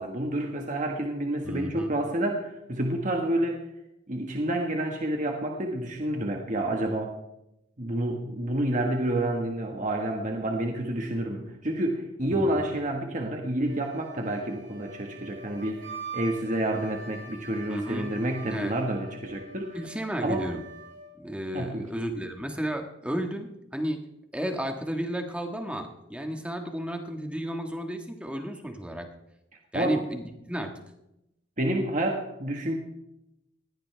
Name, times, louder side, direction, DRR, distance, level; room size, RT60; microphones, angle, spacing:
voice 1, 0.0-3.6 4.1-7.1 7.8-19.8 20.2-20.5 21.5-21.9 29.7-30.0 31.6-32.8, right 1 dB, 40° right, 2 dB, 1.5 m, -29 dB
voice 2, 1.4-1.9 12.3-12.6 17.7-18.1 18.5-18.7 19.7-20.6 21.1-24.0 24.3-29.1 29.7-30.7, equal, 5° right, 4 dB, 1.5 m, -33 dB
Wind instrument woodwind instrument, 13.7-21.1, right 4 dB, 65° right, 7.2 m, -44 dB
20.5 x 15.5 x 3.4 m, 0.86 s
head